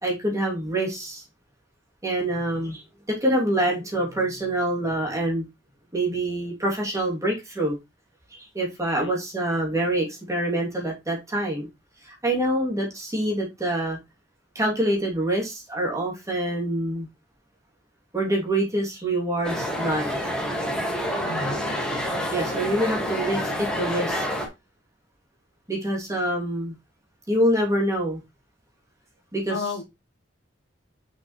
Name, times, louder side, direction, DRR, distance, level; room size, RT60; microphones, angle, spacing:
voice 1, 0.0-1.2 2.0-2.8 3.1-5.4 5.9-7.8 8.3-11.7 12.0-14.0 14.5-17.1 18.1-20.2 22.3-24.3 25.7-26.7 27.3-28.2 29.3-29.5, right 1 dB, 20° right, 3.0 m, -26 dB
sound 1, 19.4-24.5, equal, 5° left, 2.1 m, -28 dB
voice 2, 21.2-21.6 29.5-29.8, left 4 dB, 70° left, 1.0 m, -32 dB
6.3 x 5.9 x 3.3 m
head